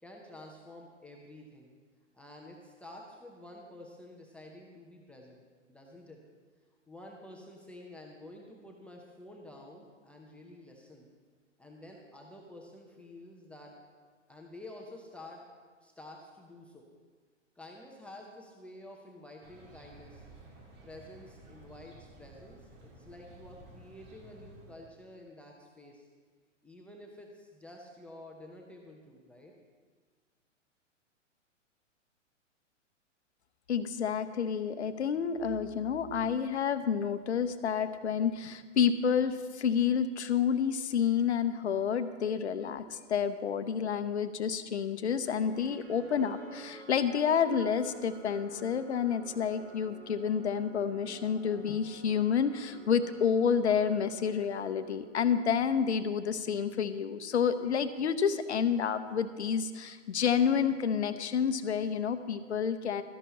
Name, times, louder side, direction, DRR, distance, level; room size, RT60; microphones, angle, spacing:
voice 1, 0.0-1.7 2.1-5.4 5.7-6.2 6.9-11.1 11.6-13.7 14.3-15.4 15.8-16.8 17.6-20.3 20.8-26.1 26.6-29.5, left 1 dB, 5° left, -1 dB, 0.7 m, -50 dB
sound 1, 19.4-24.9, right 2 dB, 30° right, 2.0 m, -54 dB
voice 2, 33.7-63.0, left 7 dB, 60° left, 11 dB, 0.8 m, -29 dB
sound 2, 45.3-55.5, right 3 dB, 55° right, 3.0 m, -50 dB
13.0 x 11.0 x 4.2 m, 1.5 s
figure-of-eight pair, 110°, 37 cm